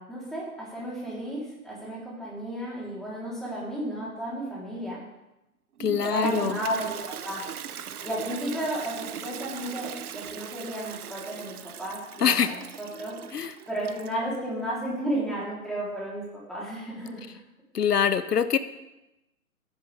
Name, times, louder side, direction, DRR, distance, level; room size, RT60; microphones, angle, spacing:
voice 1, 0.0-5.0 6.0-7.4 8.0-13.1 13.7-17.2, right 1 dB, ahead, -7 dB, 3.8 m, -33 dB
voice 2, 5.8-6.6 12.2-12.5 13.3-13.5 17.7-18.6, left 7 dB, 90° left, 13 dB, 0.9 m, -24 dB
Toilet flush, 5.8-14.4, right 9 dB, 70° right, 0.9 m, -40 dB
16.0 x 10.5 x 3.6 m, 0.94 s
hypercardioid pair, 130°, 46 cm